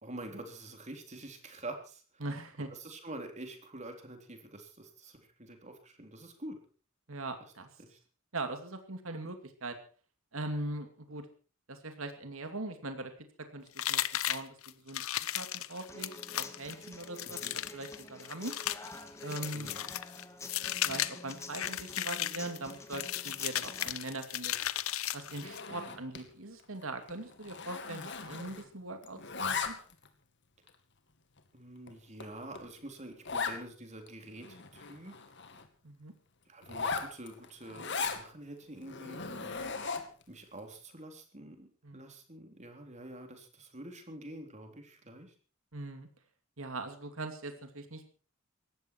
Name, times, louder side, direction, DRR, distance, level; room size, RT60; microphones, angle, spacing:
voice 1, 0.0-2.0 2.7-6.6 7.8-8.0 17.3-17.6 19.5-19.9 25.9-26.0 31.5-35.2 36.5-39.8 40.3-45.3, right 1 dB, 35° right, 4 dB, 3.6 m, -47 dB
voice 2, 2.2-2.7 7.1-7.7 8.3-9.8 10.3-11.3 11.7-13.1 13.4-15.0 15.3-17.4 17.7-18.5 19.2-19.7 20.8-24.5 25.1-29.7 35.8-36.1 41.8-42.2 45.7-46.1 46.6-48.1, right 2 dB, 75° right, 6 dB, 2.6 m, -41 dB
sound 1, 13.8-25.7, left 12 dB, 90° left, 0.9 m, -36 dB
Human voice / Acoustic guitar, 15.9-23.9, left 2 dB, 15° left, 2.1 m, -49 dB
Zipper (clothing), 25.3-26.3 26.6-26.8 27.1-28.8 29.0-30.1 30.7-30.8 31.4-31.5 31.9-32.0 32.2-32.3 32.5-32.7 33.2-33.6 34.1-34.2 34.4-35.7 36.6-38.2 38.8-40.2, left 5 dB, 60° left, 2.3 m, -38 dB
19.0 x 15.5 x 4.6 m, 0.39 s
head